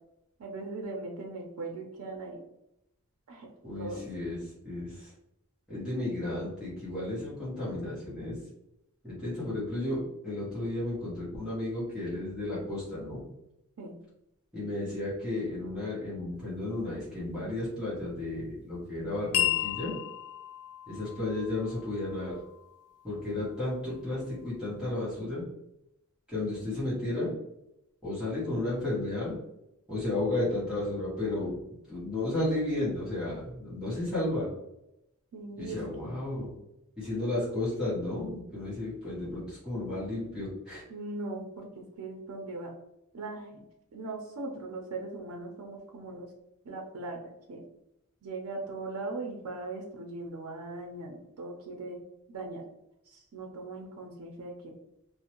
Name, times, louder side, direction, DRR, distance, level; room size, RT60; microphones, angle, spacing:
voice 1, 0.4-2.4 3.3-3.5 3.8-4.0 13.8-13.9 35.3-35.8 40.9-42.7 43.1-43.6 43.9-46.3 46.6-47.6 48.2-52.0 52.3-52.6 53.1-54.7, right 2 dB, 90° right, 1 dB, 0.5 m, -39 dB
voice 2, 3.6-5.1 5.7-8.4 9.0-13.2 14.5-19.9 20.9-22.4 23.0-25.4 26.3-27.3 28.0-29.4 29.9-31.6 31.9-34.5 35.6-36.5 37.0-40.8, left 2 dB, 5° right, -11 dB, 1.0 m, -33 dB
sound 1, 19.3-24.0, left 12 dB, 85° left, 0.6 m, -35 dB
2.5 x 2.0 x 2.8 m, 0.84 s
head